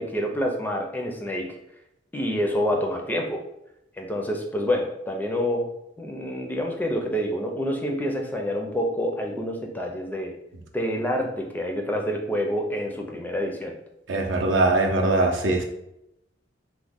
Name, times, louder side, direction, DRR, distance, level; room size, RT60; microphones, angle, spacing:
voice 1, 0.0-1.5 2.1-3.4 4.0-5.7 6.0-10.3 10.7-13.7, equal, 10° left, 1 dB, 0.4 m, -27 dB
voice 2, 14.1-15.6, right 2 dB, 80° right, 2 dB, 0.5 m, -21 dB
3.0 x 2.1 x 3.4 m, 0.84 s
head